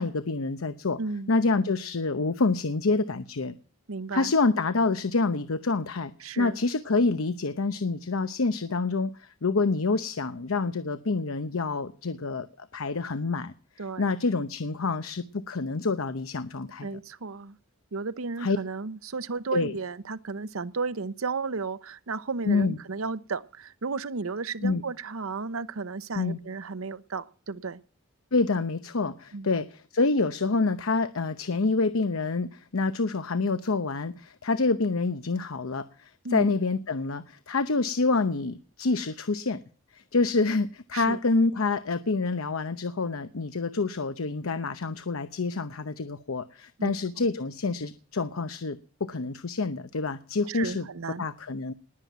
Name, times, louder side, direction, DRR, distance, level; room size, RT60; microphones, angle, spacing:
voice 1, 0.0-1.0 1.3-3.5 4.1-6.1 6.4-13.5 14.0-16.9 18.4-18.6 19.5-19.7 22.5-22.8 24.6-24.8 26.2-26.4 28.3-39.6 39.9-50.9 51.2-51.7, left 3 dB, 85° left, 12 dB, 0.9 m, -27 dB
voice 2, 1.0-1.3 3.9-4.3 6.2-6.6 13.8-14.1 16.8-17.6 17.9-27.8 29.3-29.5 36.2-36.5 40.9-41.2 46.8-47.3 50.5-51.3, right 4 dB, 85° right, 15 dB, 0.8 m, -34 dB
19.5 x 7.5 x 9.3 m, 0.42 s
head